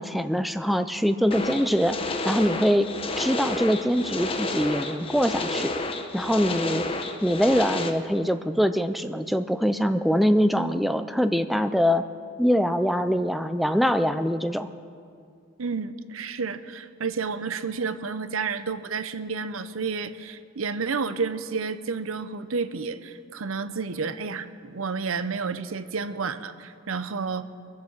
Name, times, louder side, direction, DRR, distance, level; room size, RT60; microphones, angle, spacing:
voice 1, 0.0-2.0 2.2-2.9 3.2-5.7 6.1-6.8 7.2-12.0 12.4-14.7, equal, ahead, 10 dB, 0.4 m, -23 dB
sound 1, 1.3-7.9, left 2 dB, 25° left, 0.9 m, -30 dB
voice 2, 15.6-27.4, right 5 dB, 75° right, 12 dB, 0.7 m, -30 dB
22.0 x 7.6 x 7.3 m, 2.3 s
head